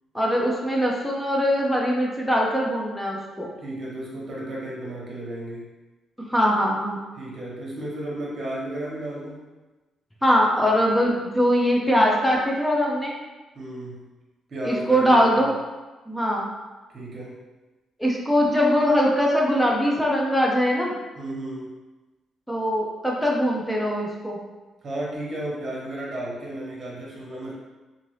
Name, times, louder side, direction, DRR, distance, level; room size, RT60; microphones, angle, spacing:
voice 1, 0.1-3.5 6.3-7.0 10.2-13.2 14.6-15.5 16.1-16.5 18.0-21.0 22.5-24.4, equal, 5° left, -2 dB, 0.5 m, -22 dB
voice 2, 3.6-5.7 7.2-9.4 13.5-14.1 14.5-15.5 16.9-17.4 21.2-21.7 24.8-27.5, right 1 dB, 40° right, -5 dB, 1.1 m, -33 dB
2.7 x 2.6 x 3.1 m, 1.2 s
cardioid pair, 90°, 0 cm